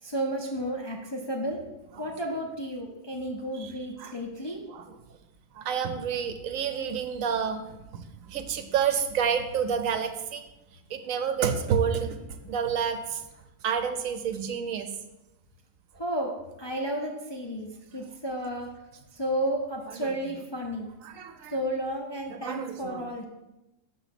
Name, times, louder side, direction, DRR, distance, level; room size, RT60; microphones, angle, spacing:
voice 1, 0.0-1.6 2.0-4.6 16.0-18.7 19.1-20.9 21.5-23.2, right 1 dB, 30° left, -1 dB, 0.5 m, -32 dB
voice 2, 5.5-10.4 10.7-12.2 12.5-13.2 13.6-14.9 19.9-20.2 21.0-21.6 22.3-23.0, right 7 dB, 75° right, 7 dB, 1.0 m, -29 dB
6.1 x 4.1 x 5.8 m, 0.98 s
omnidirectional pair, 1.4 m